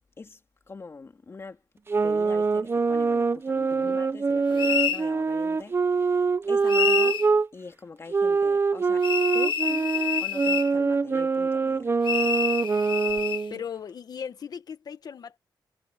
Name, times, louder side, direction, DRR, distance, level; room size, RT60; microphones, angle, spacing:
voice 1, 0.7-1.6 2.0-7.2 7.5-9.1 9.3-11.9, left 4 dB, 35° left, 2.8 m, -43 dB
sound 1, 1.9-7.5 8.1-13.6, right 4 dB, 30° right, 0.9 m, -24 dB
voice 2, 3.7-4.0 13.5-15.4, left 7 dB, 55° left, 1.5 m, -38 dB
sound 2, 4.6-5.0 6.7-7.3 9.0-10.7 12.0-13.4, left 8 dB, 80° left, 1.5 m, -27 dB
wide cardioid pair, 130°, 8 cm